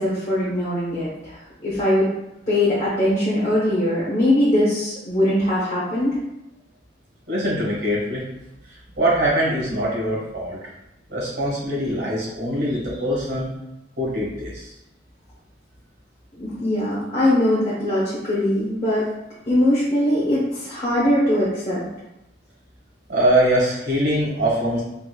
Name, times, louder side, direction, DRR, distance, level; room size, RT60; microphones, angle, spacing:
voice 1, 0.0-1.4 1.6-2.1 2.5-6.2 16.3-19.1 19.5-21.8, left 1 dB, 40° left, -10 dB, 0.9 m, -21 dB
voice 2, 7.3-8.2 9.0-10.6 11.1-13.5 14.0-14.7 23.1-24.8, right 1 dB, 70° right, -5 dB, 1.5 m, -22 dB
4.2 x 2.6 x 2.3 m, 0.90 s
head